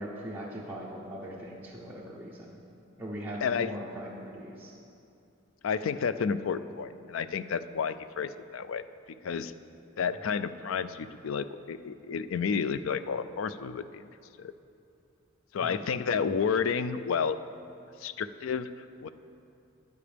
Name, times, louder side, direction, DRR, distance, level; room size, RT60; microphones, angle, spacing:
voice 1, 0.0-2.6 3.0-4.8 15.6-15.8, equal, 10° right, -5 dB, 0.8 m, -40 dB
voice 2, 5.6-8.8 9.2-9.5 10.0-14.0 14.4-14.5 15.5-17.4 18.0-18.7 19.0-19.1, left 6 dB, 70° left, 13 dB, 0.4 m, -31 dB
14.0 x 9.5 x 3.4 m, 2.7 s
head